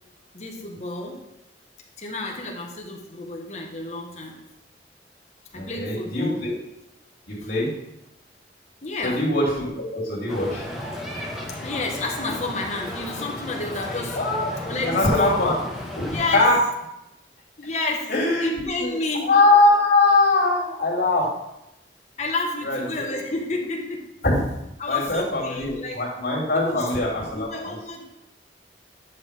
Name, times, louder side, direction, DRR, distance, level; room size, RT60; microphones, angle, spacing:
voice 1, 0.3-1.2 2.0-4.3 5.5-6.4 7.4-7.5 8.8-9.2 11.6-14.2 14.6-15.3 16.1-16.5 17.6-18.1 18.4-19.3 22.2-24.0 24.8-26.0 26.5-26.9 27.3-28.0, left 3 dB, 40° left, 0 dB, 1.4 m, -30 dB
voice 2, 5.5-6.5 7.3-7.7 9.0-10.6 14.1-14.5 14.8-15.5 16.3-16.6 18.1-18.9 19.2-21.3 22.6-23.1 24.2-24.4 24.9-27.7, left 2 dB, 55° left, -6 dB, 3.0 m, -21 dB
sound 1, 10.3-16.5, left 1 dB, ahead, 1.4 m, -34 dB
10.5 x 5.8 x 3.6 m, 0.88 s
head